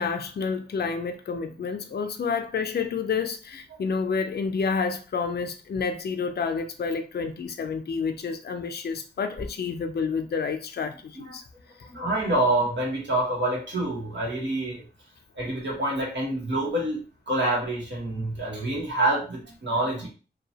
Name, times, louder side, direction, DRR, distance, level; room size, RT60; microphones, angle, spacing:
voice 1, 0.0-11.4, left 5 dB, 60° left, 0.4 m, -29 dB
voice 2, 11.8-14.8 15.4-20.1, right 1 dB, 85° right, 1.1 m, -27 dB
2.7 x 2.2 x 2.8 m
cardioid pair, 45°, 18 cm